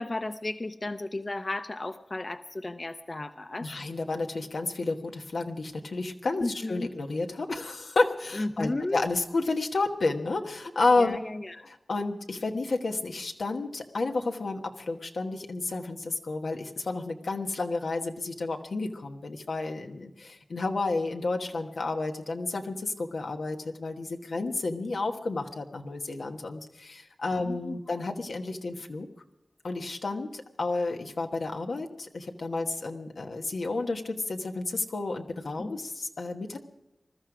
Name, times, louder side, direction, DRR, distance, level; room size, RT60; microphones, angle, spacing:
voice 1, 0.0-3.7 6.4-6.9 8.3-9.0 11.0-11.6 27.4-27.8 35.6-35.7, left 2 dB, 45° left, 9 dB, 0.8 m, -34 dB
voice 2, 3.6-11.2 11.6-29.1 29.6-36.6, left 3 dB, 85° left, 3 dB, 1.3 m, -31 dB
21.0 x 13.0 x 5.0 m, 0.93 s
cardioid pair, 40°, 0 cm